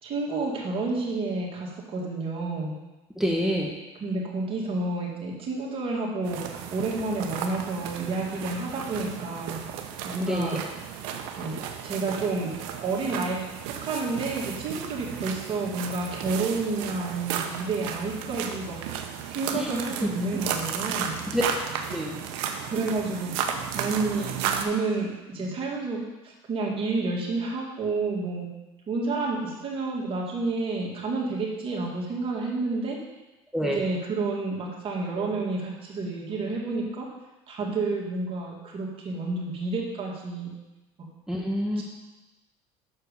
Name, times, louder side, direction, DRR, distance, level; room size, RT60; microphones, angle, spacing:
voice 1, 0.0-2.7 4.0-6.4 6.7-9.6 10.0-10.6 11.4-11.6 11.8-12.5 12.8-13.4 13.8-18.8 19.3-21.1 22.6-24.3 24.6-28.5 28.9-33.0 33.6-37.1 37.5-40.5 41.8-41.9, right 3 dB, 45° right, -3 dB, 2.3 m, -30 dB
voice 2, 3.2-3.7 10.2-10.5 19.5-19.8 21.3-21.4 21.9-22.2 33.5-33.8 41.3-41.8, equal, 5° right, -1 dB, 1.0 m, -27 dB
sound 1, 6.2-24.6, right 8 dB, 75° right, 0.8 m, -34 dB
6.7 x 4.5 x 6.8 m, 1.1 s
supercardioid pair, 95°, 14 cm